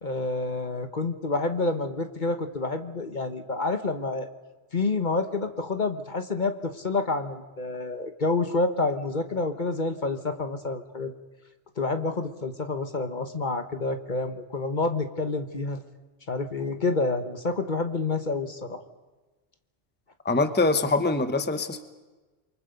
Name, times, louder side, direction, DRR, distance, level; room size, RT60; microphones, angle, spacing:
voice 1, 0.0-4.3 4.7-11.1 11.8-15.8 16.3-18.8, left 3 dB, 45° left, 8 dB, 1.4 m, -28 dB
voice 2, 20.2-21.8, left 3 dB, 10° left, 9 dB, 1.0 m, -24 dB
28.0 x 23.5 x 5.3 m, 1.2 s
omnidirectional pair, 1.2 m